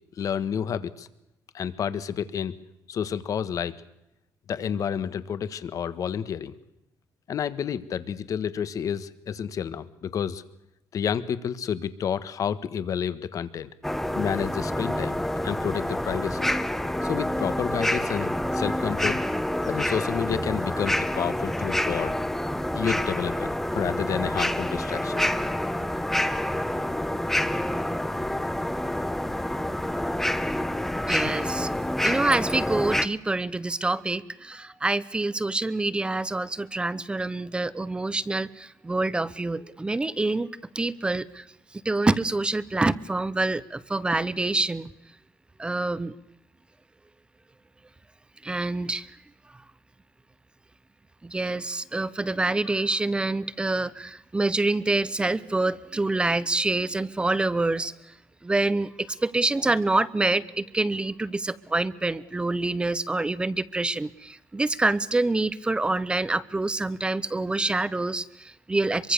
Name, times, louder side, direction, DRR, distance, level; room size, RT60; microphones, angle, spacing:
voice 1, 0.2-1.1 1.5-2.5 2.9-3.8 4.5-6.5 7.3-10.4 10.9-13.7 14.1-15.2 15.4-16.5 17.0-19.2 19.7-22.1 22.7-25.2 31.2-31.3, left 8 dB, 55° left, 14 dB, 1.5 m, -30 dB
sound 1, 13.8-33.1, left 1 dB, 5° left, 1.1 m, -27 dB
voice 2, 31.1-31.7 32.0-40.5 40.7-41.4 41.8-44.9 45.6-46.1 48.4-49.1 51.2-57.9 58.4-69.1, right 2 dB, 15° right, 17 dB, 0.9 m, -26 dB
25.5 x 23.5 x 6.9 m, 0.87 s
cardioid pair, 140°, 7 cm